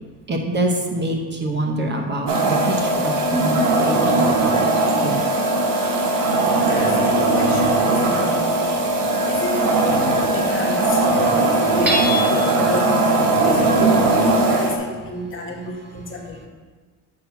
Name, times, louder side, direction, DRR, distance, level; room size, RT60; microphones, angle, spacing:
voice 1, 0.3-4.6 5.0-5.2 9.2-9.3, right 1 dB, 35° right, 2 dB, 0.8 m, -25 dB
sound 1, 2.3-14.8, right 2 dB, 80° right, 1.0 m, -19 dB
voice 2, 6.7-8.4 9.3-13.0 13.4-16.5, left 3 dB, 40° left, -2 dB, 1.3 m, -31 dB
Hammer / Chink clink, 11.9-12.7, left 1 dB, 5° right, 1.2 m, -24 dB
7.6 x 2.8 x 5.7 m, 1.4 s
cardioid pair, 95°, 33 cm